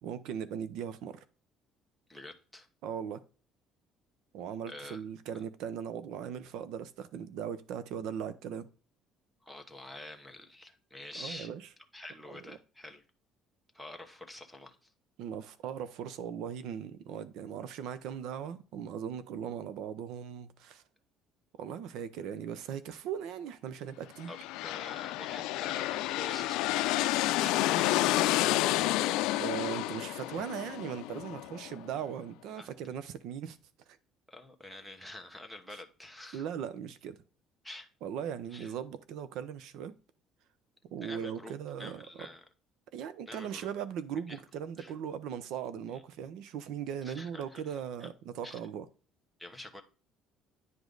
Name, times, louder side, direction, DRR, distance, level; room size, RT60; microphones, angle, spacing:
voice 1, 0.0-1.2 2.8-3.2 4.3-8.7 11.1-11.6 12.3-12.4 15.2-20.8 21.6-24.3 29.4-33.6 36.3-37.2 38.0-39.9 40.9-42.3 42.9-48.8, right 8 dB, 70° right, 0.8 m, -39 dB
voice 2, 2.1-2.7 4.7-5.0 5.3-5.4 9.4-11.5 11.9-13.0 13.7-14.9 24.3-28.2 32.6-32.7 34.3-36.5 37.6-37.9 38.5-38.7 41.0-42.4 43.3-43.7 44.3-44.4 44.8-44.9 45.9-46.0 47.0-48.1 48.4-48.6 49.4-49.8, left 1 dB, ahead, 1.0 m, -47 dB
sound 1, 24.2-31.9, left 16 dB, 80° left, 0.4 m, -30 dB
9.6 x 5.1 x 3.9 m
cardioid pair, 155°, 0 cm